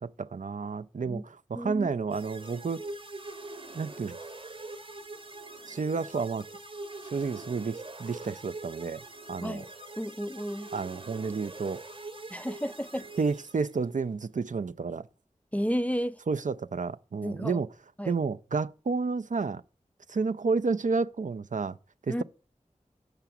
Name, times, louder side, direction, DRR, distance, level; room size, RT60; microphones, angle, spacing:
voice 1, 0.0-2.8 3.7-4.2 5.7-6.4 7.1-9.0 9.3-9.7 10.7-11.8 13.2-15.1 16.3-17.7 18.0-19.6 20.1-21.8 22.1-22.2, right 4 dB, 70° right, 0.4 m, -30 dB
voice 2, 1.5-1.9 9.4-9.7 10.0-10.7 12.3-13.1 15.5-16.2 17.2-17.6 18.0-18.2 22.1-22.2, equal, 10° left, 0.4 m, -32 dB
sound 1, 2.1-13.9, right 2 dB, 40° right, 0.9 m, -43 dB
6.8 x 5.9 x 7.2 m
wide cardioid pair, 55°, 13 cm